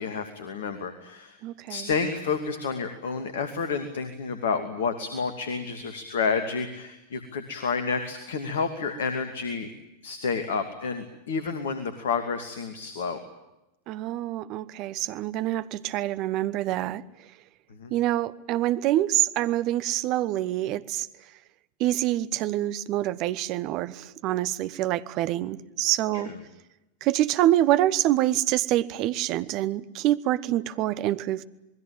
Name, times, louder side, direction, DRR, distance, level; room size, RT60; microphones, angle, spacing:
voice 1, 0.0-1.4 1.7-9.7 10.0-13.2 17.7-17.9 26.1-26.4, left 5 dB, 60° left, 9 dB, 2.7 m, -30 dB
voice 2, 1.4-1.9 13.9-17.0 17.9-21.1 21.8-26.3 27.0-31.4, right 14 dB, 40° right, 14 dB, 1.2 m, -26 dB
27.5 x 21.0 x 9.0 m, 0.95 s
figure-of-eight pair, 90°, 0 cm